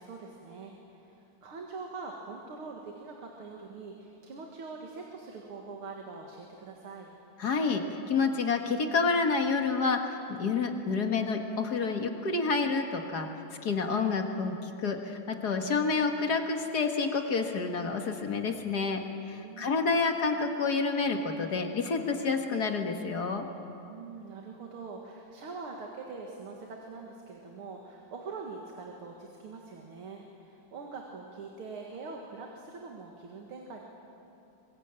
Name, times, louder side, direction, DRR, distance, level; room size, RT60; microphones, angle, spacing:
voice 1, 0.0-7.1 19.3-20.0 23.9-33.8, right 4 dB, 90° right, 1 dB, 2.7 m, -43 dB
voice 2, 7.4-13.3 13.6-19.0 19.3-23.5, left 4 dB, 50° left, 4 dB, 2.0 m, -29 dB
24.0 x 21.0 x 8.9 m, 2.8 s
omnidirectional pair, 2.3 m